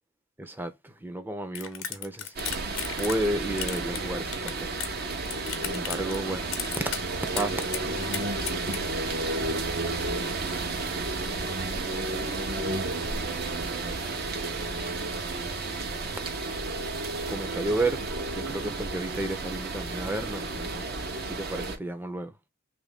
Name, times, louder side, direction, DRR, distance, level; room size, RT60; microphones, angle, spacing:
voice 1, 0.4-2.3 2.9-4.7 5.6-6.5 7.3-7.6 17.3-18.0 18.3-20.9 21.2-22.3, right 1 dB, 10° right, 0.6 m, -32 dB
sound 1, 1.5-3.3 3.6-5.0 5.2-6.2 6.5-7.0 7.4-8.8, left 9 dB, 85° left, 0.8 m, -34 dB
sound 2, 2.4-21.8, right 2 dB, 50° right, 0.8 m, -32 dB
3.1 x 2.6 x 3.4 m
head